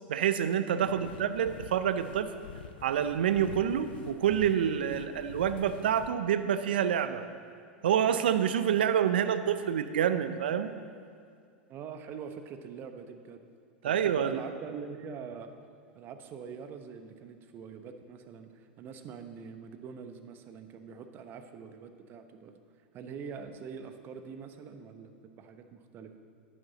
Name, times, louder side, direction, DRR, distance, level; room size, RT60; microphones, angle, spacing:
voice 1, 0.1-2.3 2.8-7.2 7.8-10.7 13.8-14.4, right 9 dB, 75° right, 11 dB, 0.6 m, -27 dB
voice 2, 0.7-1.1 11.7-13.4 13.8-15.5 15.9-22.6 22.9-26.1, right 6 dB, 40° right, 8 dB, 0.9 m, -44 dB
sound 1, 0.8-6.1, left 7 dB, 75° left, 0.6 m, -47 dB
10.5 x 9.7 x 4.0 m, 2.2 s
hypercardioid pair, 90°, 5 cm